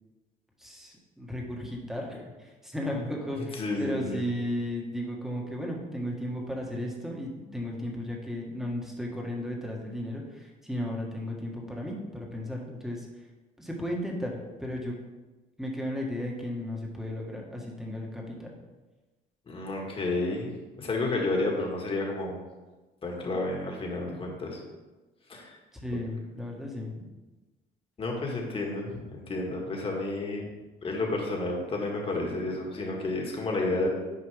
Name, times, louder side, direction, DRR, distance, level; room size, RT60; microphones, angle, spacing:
voice 1, 0.6-13.1 13.6-14.9 15.6-18.5 25.8-27.1 28.9-29.1, left 1 dB, ahead, -1 dB, 1.6 m, -35 dB
voice 2, 3.5-4.2 19.5-20.5 20.8-22.4 23.0-24.6 25.3-25.6 28.0-30.5 30.8-33.9, left 2 dB, 35° left, 0 dB, 1.9 m, -31 dB
9.7 x 5.1 x 3.5 m, 1.2 s
cardioid pair, 110°, 17 cm